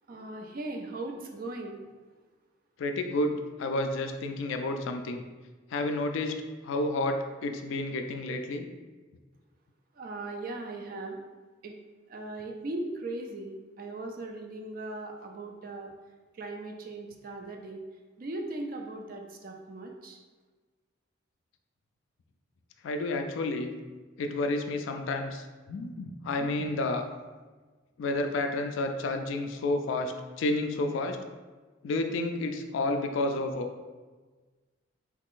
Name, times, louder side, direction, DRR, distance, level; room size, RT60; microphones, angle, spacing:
voice 1, 0.1-1.8 10.0-11.2 11.6-11.7 12.1-15.9 16.3-17.8 18.2-20.2, right 2 dB, 45° right, 3 dB, 0.4 m, -38 dB
voice 2, 2.8-5.2 5.7-6.3 6.6-8.7 22.8-23.7 24.2-27.0 28.0-31.2 31.8-33.7, left 2 dB, 70° left, 6 dB, 0.3 m, -30 dB
3.6 x 3.0 x 2.4 m, 1.3 s
head